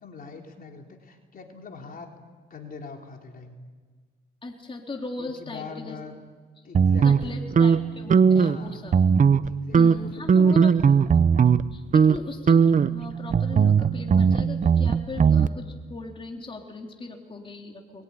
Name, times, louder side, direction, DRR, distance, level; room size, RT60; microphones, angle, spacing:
voice 1, 0.0-2.1 2.5-3.6 5.2-6.2 6.6-7.4 8.3-8.9 9.4-10.9, left 5 dB, 45° left, 2 dB, 3.7 m, -42 dB
voice 2, 4.4-6.0 7.0-9.0 9.7-10.7 11.7-18.0, left 3 dB, 25° left, 2 dB, 3.7 m, -38 dB
sound 1, 6.7-8.6 8.9-9.5 9.7-11.6 11.9-12.2 12.5-15.5, right 6 dB, 40° right, 0.9 m, -19 dB
23.5 x 22.5 x 9.8 m, 1.5 s
cardioid pair, 90°, 20 cm